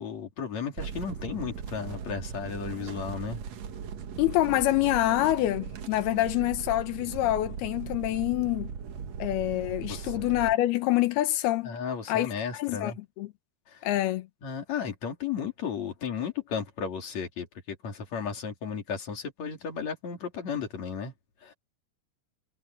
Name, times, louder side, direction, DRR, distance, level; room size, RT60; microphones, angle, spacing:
voice 1, 0.0-3.4 9.9-10.1 11.6-13.0 13.7-13.9 14.4-21.1 21.4-21.5, left 6 dB, 45° left, 4.3 m, -34 dB
sound 1, 0.8-10.5, right 7 dB, 55° right, 2.3 m, -39 dB
voice 2, 4.2-8.7 9.2-11.8 12.1-12.9 13.2-13.3 13.8-14.3, left 15 dB, 90° left, 3.0 m, -26 dB
omnidirectional pair, 4.4 m